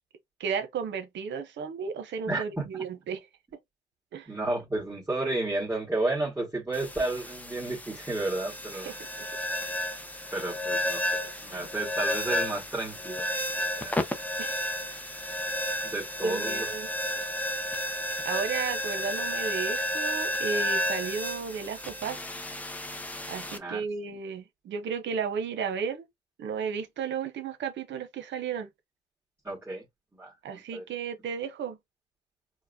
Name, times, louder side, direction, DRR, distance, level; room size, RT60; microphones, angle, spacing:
voice 1, 0.4-3.3 4.1-4.3 8.8-9.3 14.4-14.7 16.2-16.9 18.2-22.2 23.3-26.1 26.4-28.7 30.4-31.8, right 6 dB, 65° right, 0.8 m, -34 dB
voice 2, 2.3-2.7 4.3-8.9 10.3-13.3 13.8-14.1 15.8-16.7 17.0-17.2 23.5-23.8 29.4-29.8 30.1-30.8, right 2 dB, 10° right, 1.9 m, -32 dB
sound 1, 6.7-23.6, left 1 dB, 10° left, 0.6 m, -32 dB
4.6 x 2.1 x 2.7 m
cardioid pair, 90°, 20 cm